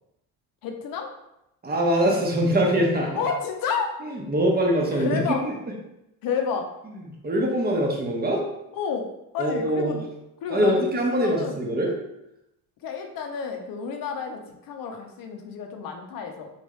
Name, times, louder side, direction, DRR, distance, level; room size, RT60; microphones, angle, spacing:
voice 1, 0.6-1.1 3.2-3.9 4.9-5.4 6.2-6.7 8.7-9.1 9.3-10.0 10.4-10.8 11.1-11.6 12.8-16.5, left 6 dB, 65° left, 4 dB, 0.7 m, -30 dB
voice 2, 1.6-3.2 4.0-5.5 6.9-8.4 9.4-10.0 10.5-11.9, equal, 25° right, -1 dB, 0.9 m, -23 dB
3.1 x 2.5 x 3.1 m, 0.86 s
supercardioid pair, 75°, 38 cm